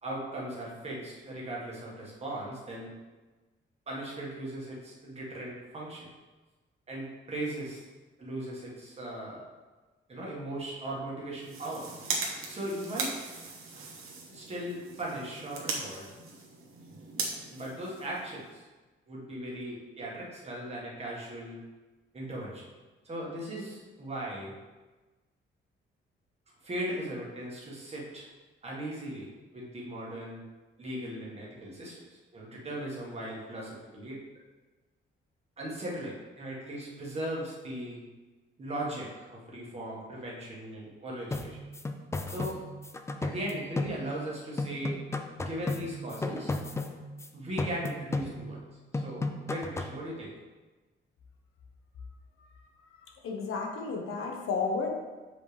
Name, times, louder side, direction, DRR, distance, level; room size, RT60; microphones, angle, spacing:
voice 1, 0.0-2.9 3.9-6.1 6.9-7.8 8.2-9.4 10.1-11.9 12.2-13.2 14.3-16.0 17.5-18.6 19.1-21.6 22.1-22.7 23.0-24.5 26.6-28.2 28.6-30.4 30.8-34.2 35.6-38.0 38.6-41.6 42.3-42.6 43.2-45.0 45.3-46.5 47.3-48.6 48.9-50.3, right 1 dB, 30° right, -5 dB, 1.8 m, -38 dB
sound 1, 11.3-18.6, right 3 dB, 75° right, 1.3 m, -39 dB
sound 2, 41.3-44.3 44.6-47.3 47.6-48.7 48.9-50.0, left 2 dB, 15° left, 0.4 m, -35 dB
voice 2, 53.2-54.9, left 4 dB, 80° left, 1 dB, 1.2 m, -32 dB
7.8 x 5.0 x 3.4 m, 1.2 s
wide cardioid pair, 155°, 21 cm